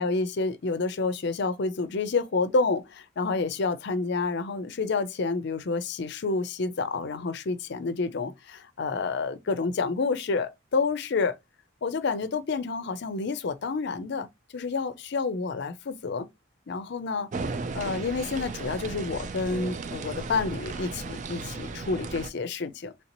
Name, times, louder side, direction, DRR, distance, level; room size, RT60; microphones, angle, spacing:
voice 1, 0.0-11.3 11.8-14.3 14.5-16.3 16.7-17.3 17.7-22.9, left 4 dB, 55° left, 0.5 m, -29 dB
sound 1, 17.3-22.3, right 3 dB, 35° right, 0.3 m, -35 dB
3.2 x 2.8 x 2.8 m
head